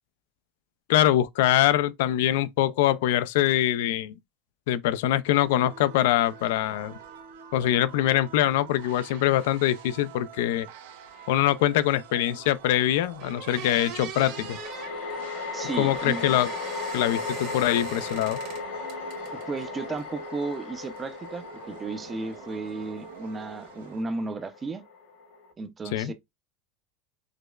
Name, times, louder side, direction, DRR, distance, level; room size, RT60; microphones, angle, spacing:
voice 1, 0.9-4.1 4.7-6.9 7.5-10.7 11.3-14.6 15.8-16.5 16.9-18.4 25.9-26.1, left 13 dB, 75° left, 0.3 m, -23 dB
sound 1, 5.2-24.0, right 8 dB, 90° right, 0.7 m, -47 dB
sound 2, 11.2-11.3 14.1-25.5, left 4 dB, 55° left, 1.1 m, -37 dB
sound 3, 12.7-12.8 13.2-14.9 15.8-18.6 18.9-19.6, right 7 dB, 50° right, 1.1 m, -41 dB
voice 2, 15.5-16.4 19.3-24.8 25.6-26.1, right 3 dB, 15° right, 0.4 m, -34 dB
4.9 x 2.1 x 2.2 m
supercardioid pair, 160°, 0 cm